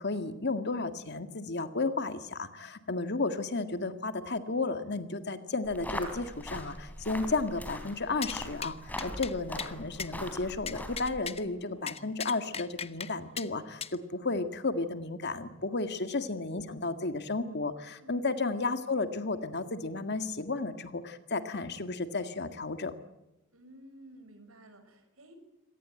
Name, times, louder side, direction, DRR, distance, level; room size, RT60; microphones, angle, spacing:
voice 1, 0.0-8.8 9.0-22.9, left 3 dB, 55° left, 9 dB, 1.9 m, -33 dB
sound 1, 5.6-11.2, left 1 dB, 10° left, 3.7 m, -41 dB
sound 2, 8.2-8.4 8.6-8.7 9.0-9.3 9.6-9.7 10.0-10.1 10.7-11.4 11.9-13.1 13.4-13.5 13.8-14.0, left 7 dB, 30° left, 0.9 m, -37 dB
voice 2, 11.5-11.9 12.4-12.8 15.8-16.0 18.0-18.3 23.5-25.4, right 1 dB, 90° right, 8 dB, 5.8 m, -55 dB
26.0 x 18.0 x 9.0 m, 0.94 s
head